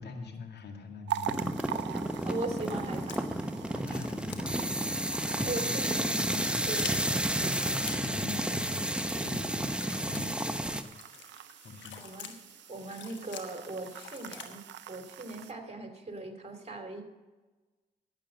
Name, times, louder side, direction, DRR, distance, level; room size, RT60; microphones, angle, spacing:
voice 1, 0.0-1.8 2.1-2.4 3.7-6.9 7.3-10.4 10.8-11.0 11.6-12.0, left 4 dB, 65° left, 4 dB, 2.1 m, -44 dB
sound 1, 1.1-15.5, right 11 dB, 75° right, 0.6 m, -44 dB
sound 2, 1.3-10.8, right 1 dB, 5° right, 1.0 m, -31 dB
sound 3, 1.8-14.5, left 8 dB, 80° left, 1.2 m, -49 dB
voice 2, 2.2-3.3 5.5-6.2 6.7-6.9 12.0-12.3 12.7-17.0, right 2 dB, 35° right, 5 dB, 2.8 m, -39 dB
11.5 x 9.0 x 6.4 m, 1.2 s
supercardioid pair, 45°, 19 cm